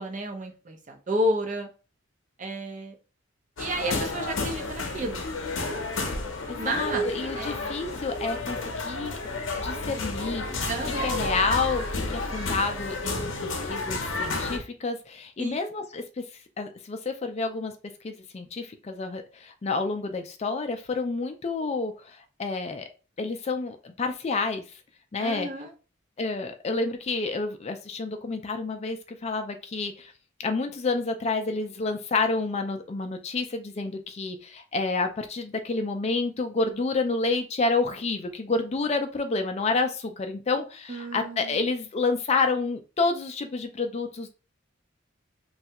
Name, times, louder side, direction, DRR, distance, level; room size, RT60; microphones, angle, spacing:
voice 1, 0.0-1.7 2.4-3.0 3.6-5.2 6.6-7.8 10.7-11.2 15.4-15.6 25.2-25.7 40.9-41.7, equal, 40° right, 4 dB, 0.6 m, -31 dB
sound 1, 3.6-14.6, left 2 dB, 70° left, 0.7 m, -31 dB
voice 2, 6.5-9.2 9.6-10.4 11.0-13.3 13.6-16.2 16.6-17.7 18.0-22.9 23.2-24.6 25.1-25.5 26.2-30.1 30.4-44.3, left 3 dB, 30° left, 7 dB, 0.4 m, -29 dB
3.2 x 2.3 x 2.8 m, 0.33 s
head